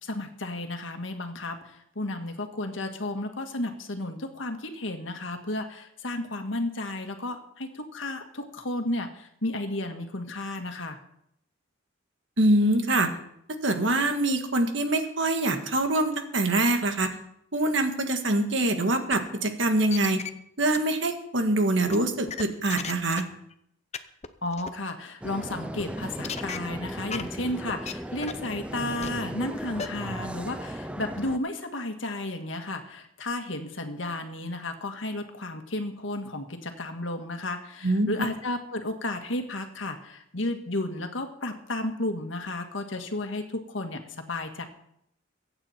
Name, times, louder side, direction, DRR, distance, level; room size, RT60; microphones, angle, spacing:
voice 1, 0.0-11.0 24.4-44.7, left 2 dB, 75° left, 5 dB, 1.8 m, -33 dB
voice 2, 12.4-13.1 13.6-17.1 17.5-20.2 20.6-23.2 37.8-38.3, right 1 dB, 65° right, 6 dB, 1.7 m, -24 dB
sound 1, 19.1-19.2 19.6-20.3 20.7-20.8 21.9-23.2 23.5-23.6 23.9-24.0 24.2-24.3 24.5-24.7 26.2-26.6 27.1-27.2 27.7-27.9 28.2-28.5 29.0-29.1 29.8-29.9, left 6 dB, 35° left, 0.7 m, -34 dB
sound 2, 25.2-31.4, equal, 5° right, 0.6 m, -37 dB
22.5 x 8.9 x 4.4 m, 0.73 s
head